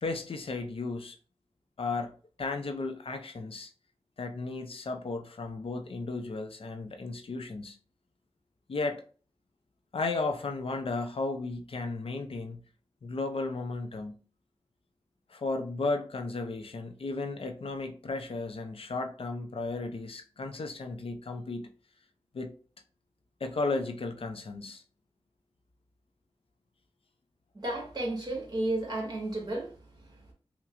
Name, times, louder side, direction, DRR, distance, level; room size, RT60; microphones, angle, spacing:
voice 1, 0.0-1.2 1.8-2.1 2.4-3.7 4.2-7.8 8.7-9.0 9.9-12.6 13.0-14.1 15.3-21.7 22.3-22.5 23.4-24.8, left 3 dB, 60° left, 0.6 m, -34 dB
voice 2, 27.5-30.3, right 2 dB, 40° right, 1.6 m, -33 dB
5.7 x 2.2 x 2.5 m
wide cardioid pair, 95°, 11 cm